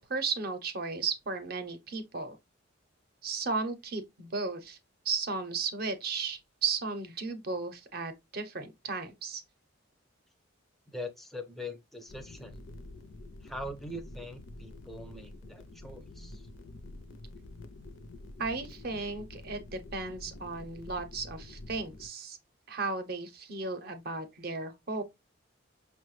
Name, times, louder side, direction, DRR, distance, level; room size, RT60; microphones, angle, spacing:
voice 1, 0.0-2.4 3.2-4.8 5.0-9.4 18.4-22.4 22.7-25.0, right 4 dB, 50° right, 0.6 m, -35 dB
voice 2, 10.9-12.6 13.4-16.5, left 1 dB, ahead, 0.4 m, -42 dB
sound 1, 12.1-22.1, left 2 dB, 65° left, 0.4 m, -47 dB
5.4 x 2.1 x 3.0 m
head